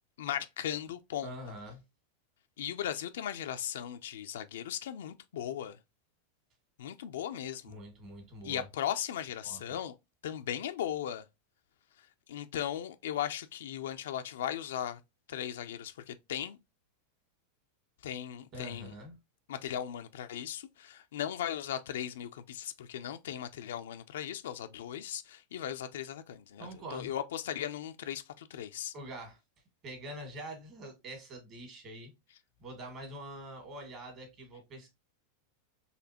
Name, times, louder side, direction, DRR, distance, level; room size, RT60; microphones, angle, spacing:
voice 1, 0.2-1.3 2.6-5.8 6.8-7.8 8.4-10.0 10.2-11.2 12.3-15.0 15.3-16.6 18.0-18.9 19.5-28.9, left 10 dB, 75° left, 0.4 m, -37 dB
voice 2, 1.2-1.8 7.6-8.7 9.4-9.6 18.5-19.2 26.6-27.1 28.9-29.4 29.8-32.1 32.6-34.9, right 1 dB, 40° right, 1.8 m, -45 dB
4.1 x 2.7 x 2.8 m
hypercardioid pair, 105°, 0 cm